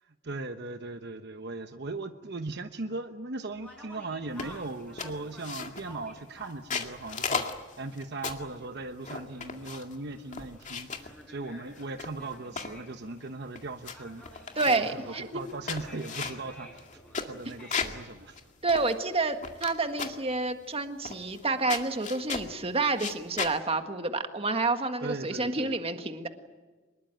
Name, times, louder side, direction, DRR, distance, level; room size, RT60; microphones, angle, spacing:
voice 1, 0.0-7.4 7.8-16.8 17.3-18.4 25.0-25.8, right 2 dB, 60° right, 7 dB, 1.1 m, -38 dB
Conversation, 3.5-18.5, left 1 dB, 5° left, 5.9 m, -52 dB
sound 1, 4.4-4.7 5.0-6.0 6.5-8.5 9.0-10.0 10.3-11.1 11.8-12.8 13.3-13.4 13.6-14.0 14.2-14.9 15.4-18.0 18.4-18.5 18.7-19.7 20.0-20.3 21.1-21.4 21.7-22.5 22.9-23.6, left 5 dB, 40° left, 2.1 m, -35 dB
voice 2, 14.6-15.4 18.6-26.3, right 3 dB, 30° right, 7 dB, 1.7 m, -29 dB
24.5 x 21.5 x 9.0 m, 1.3 s
head